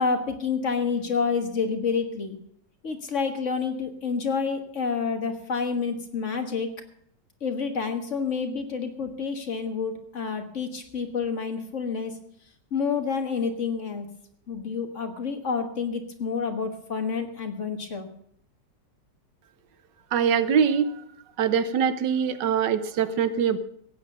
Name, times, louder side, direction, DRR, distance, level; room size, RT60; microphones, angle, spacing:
voice 1, 0.0-2.4 2.8-6.7 7.4-12.1 12.7-14.1 14.5-18.1, left 5 dB, 45° left, 6 dB, 1.7 m, -28 dB
voice 2, 20.1-21.0 21.4-23.6, right 7 dB, 80° right, 13 dB, 1.5 m, -23 dB
16.0 x 8.9 x 6.7 m, 0.66 s
omnidirectional pair, 1.9 m